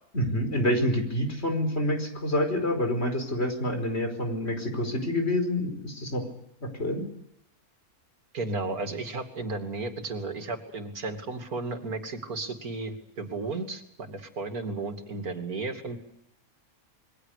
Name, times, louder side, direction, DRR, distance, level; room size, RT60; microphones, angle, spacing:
voice 1, 0.1-6.2 6.6-7.0, left 1 dB, 45° left, 6 dB, 5.3 m, -27 dB
voice 2, 8.3-16.0, right 3 dB, 90° right, 6 dB, 3.2 m, -34 dB
27.5 x 23.0 x 6.7 m, 0.79 s
omnidirectional pair, 1.5 m